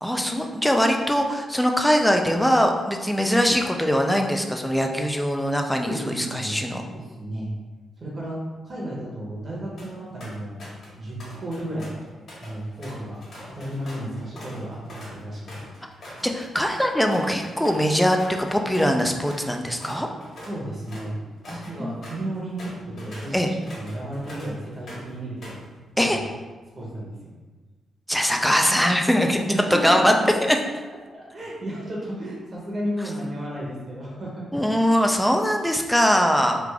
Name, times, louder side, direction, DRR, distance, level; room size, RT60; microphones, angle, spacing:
voice 1, 0.0-6.8 16.2-20.1 21.5-21.9 23.3-23.5 26.0-26.2 28.1-29.4 29.8-30.1 30.5-30.6 34.5-36.6, equal, 5° left, 3 dB, 0.3 m, -22 dB
voice 2, 5.8-7.5 8.0-10.6 11.0-11.9 12.4-13.2 13.5-15.6 19.8-19.9 20.4-21.1 21.5-25.6 25.9-26.2 26.8-27.3 29.5-30.1 30.9-34.5, right 1 dB, 35° right, -4 dB, 0.9 m, -33 dB
sound 1, 9.8-9.9 10.2-10.9 11.2-19.0 19.2-19.5 19.8-25.1 25.4-26.2, equal, 50° left, 1.4 m, -43 dB
3.3 x 2.5 x 3.4 m, 1.3 s
wide cardioid pair, 140°, 0 cm